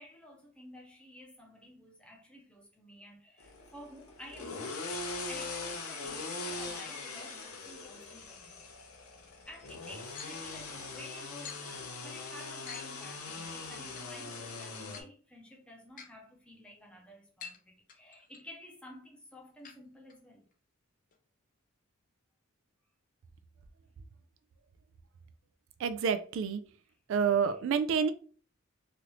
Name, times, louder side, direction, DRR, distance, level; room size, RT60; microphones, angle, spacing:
voice 1, 0.0-5.0 5.3-8.6 9.5-20.4 27.1-27.5, left 1 dB, 5° left, 0.7 m, -52 dB
sound 1, 3.4-15.0, left 3 dB, 90° left, 0.7 m, -41 dB
sound 2, 10.1-10.3 11.4-11.6 12.7-12.9 14.0-14.1 14.8-15.1 16.0-16.1 17.4-17.6 17.9-18.4 19.6-19.8 20.1-20.2 20.5-20.6 21.1-21.2, left 7 dB, 40° left, 0.5 m, -46 dB
voice 2, 25.8-26.6 27.1-28.1, right 6 dB, 65° right, 0.3 m, -28 dB
3.0 x 2.5 x 3.0 m
head